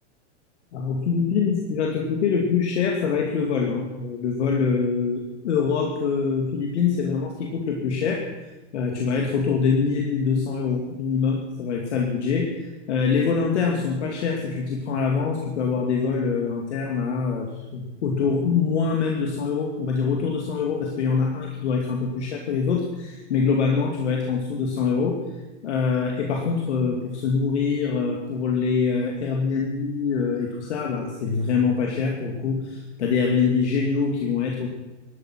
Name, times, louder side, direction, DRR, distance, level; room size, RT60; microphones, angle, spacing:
voice 1, 0.7-8.2 8.7-25.2 25.6-34.7, left 5 dB, 70° left, 1 dB, 2.6 m, -24 dB
18.5 x 13.0 x 5.9 m, 1.1 s
supercardioid pair, 165°, 35 cm